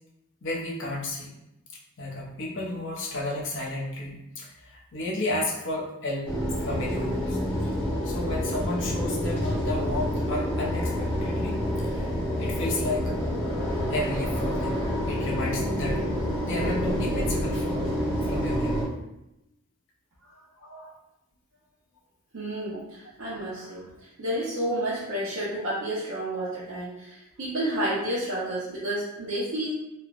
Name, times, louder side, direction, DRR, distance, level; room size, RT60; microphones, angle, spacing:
voice 1, 0.4-1.3 2.0-6.4 6.6-7.4 8.0-12.1 12.4-13.1 13.9-14.8 15.1-16.1 16.4-18.9 20.6-21.0, left 1 dB, 60° left, -3 dB, 0.6 m, -32 dB
sound 1, 6.2-18.8, equal, 10° left, 0.9 m, -28 dB
voice 2, 22.3-29.7, right 1 dB, 65° right, -9 dB, 0.6 m, -30 dB
3.1 x 2.0 x 2.3 m, 0.89 s
head